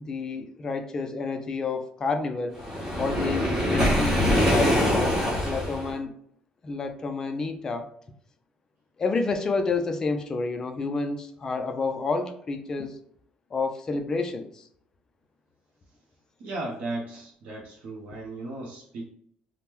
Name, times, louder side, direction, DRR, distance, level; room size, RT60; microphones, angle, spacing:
voice 1, 0.1-2.6 3.0-5.2 5.4-6.1 6.6-7.9 9.0-13.0 13.5-14.6, left 4 dB, 25° left, 6 dB, 0.3 m, -29 dB
Waves surf, 2.6-5.9, equal, 10° right, 1.1 m, -23 dB
voice 2, 16.4-19.0, right 2 dB, 60° right, -2 dB, 0.6 m, -36 dB
2.9 x 2.0 x 3.4 m, 0.66 s
cardioid pair, 170°, 3 cm